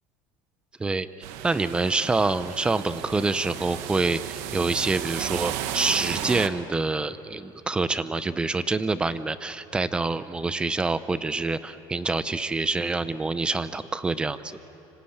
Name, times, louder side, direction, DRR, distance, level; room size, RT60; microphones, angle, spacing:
voice 1, 0.8-14.5, right 3 dB, 10° right, 14 dB, 0.6 m, -26 dB
sound 1, 1.2-6.5, right 11 dB, 60° right, 1.3 m, -34 dB
25.5 x 25.5 x 8.7 m, 2.8 s
cardioid pair, 175°, 12 cm